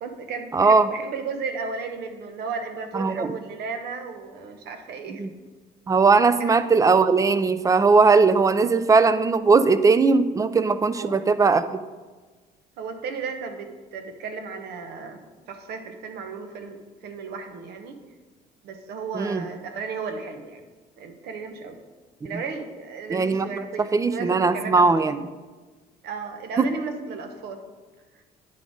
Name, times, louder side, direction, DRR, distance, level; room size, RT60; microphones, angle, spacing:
voice 1, 0.0-5.2 6.4-6.6 10.9-11.3 12.8-18.0 18.6-20.6 21.0-21.8 22.2-25.2 26.0-27.6, right 5 dB, 75° right, 6 dB, 0.9 m, -34 dB
voice 2, 0.5-0.9 2.9-3.3 5.2-5.3 5.9-11.8 19.1-19.4 23.1-23.5 23.9-25.2 26.6-26.7, right 4 dB, 20° right, 13 dB, 0.4 m, -19 dB
9.4 x 3.8 x 4.9 m, 1.3 s
cardioid pair, 110°, 17 cm